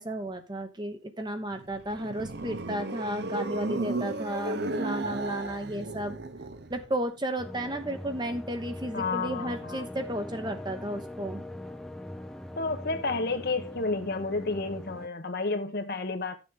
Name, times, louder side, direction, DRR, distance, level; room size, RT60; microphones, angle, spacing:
voice 1, 0.0-6.2 6.7-11.4, right 1 dB, 20° right, 1.0 m, -33 dB
sound 1, 1.6-6.9, right 2 dB, 55° right, 0.9 m, -34 dB
sound 2, 7.4-15.1, left 1 dB, ahead, 0.7 m, -42 dB
voice 2, 8.9-9.8 12.6-16.4, left 3 dB, 50° left, 1.1 m, -31 dB
11.5 x 7.0 x 3.7 m
head